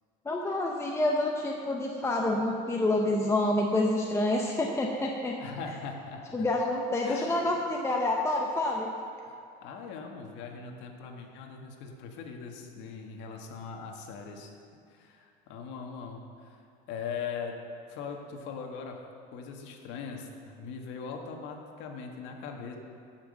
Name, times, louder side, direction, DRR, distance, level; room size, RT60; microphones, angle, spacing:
voice 1, 0.2-5.4 6.3-8.9, left 2 dB, 15° left, 0 dB, 0.8 m, -28 dB
voice 2, 5.4-6.5 7.0-7.5 9.2-14.5 14.9-16.6 16.9-17.5 17.9-19.0 19.3-22.8, left 5 dB, 65° left, 2 dB, 1.7 m, -40 dB
14.5 x 6.1 x 6.6 m, 2.5 s
cardioid pair, 140°, 20 cm